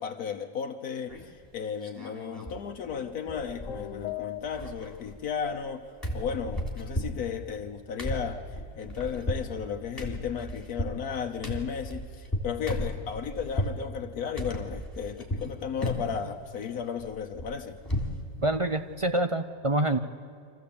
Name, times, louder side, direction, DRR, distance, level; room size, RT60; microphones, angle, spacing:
voice 1, 0.0-5.9 6.1-8.4 8.8-17.8, left 7 dB, 80° left, 4 dB, 1.5 m, -34 dB
sound 1, 1.1-1.5 1.8-2.6 2.9-3.0 3.3-4.1 4.4-5.7 6.0-13.8 14.4-15.5 15.8-16.3 16.6-18.2 18.6-18.7 19.0-19.2, left 1 dB, 15° left, 3.2 m, -35 dB
sound 2, 2.9-4.9, left 11 dB, 60° left, 1.2 m, -39 dB
voice 2, 18.4-20.0, right 2 dB, 30° right, 8 dB, 0.6 m, -26 dB
25.0 x 15.0 x 8.6 m, 2.4 s
omnidirectional pair, 1.6 m